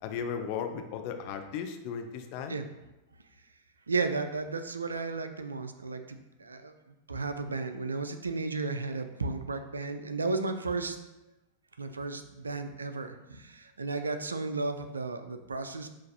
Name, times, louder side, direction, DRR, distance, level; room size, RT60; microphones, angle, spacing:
voice 1, 0.0-2.6, left 7 dB, 45° left, 5 dB, 0.4 m, -36 dB
voice 2, 3.9-6.7 7.1-11.0 11.8-15.9, right 3 dB, 75° right, 8 dB, 0.3 m, -34 dB
5.8 x 2.5 x 2.7 m, 0.97 s
figure-of-eight pair, 90°, 0 cm